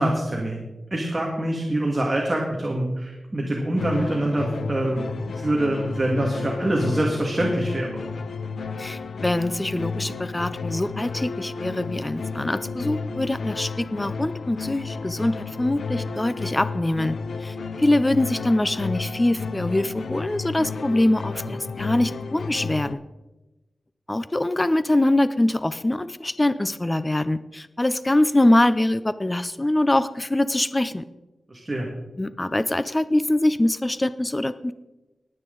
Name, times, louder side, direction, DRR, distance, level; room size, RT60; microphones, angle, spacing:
voice 1, 0.0-8.0 31.5-31.9, right 1 dB, 25° right, -1 dB, 1.8 m, -25 dB
sound 1, 3.8-22.9, left 4 dB, 75° left, 0.6 m, -32 dB
voice 2, 8.8-23.0 24.1-31.0 32.2-34.7, left 1 dB, 15° left, 14 dB, 0.4 m, -23 dB
20.5 x 8.7 x 3.8 m, 1.1 s
wide cardioid pair, 135°, 0 cm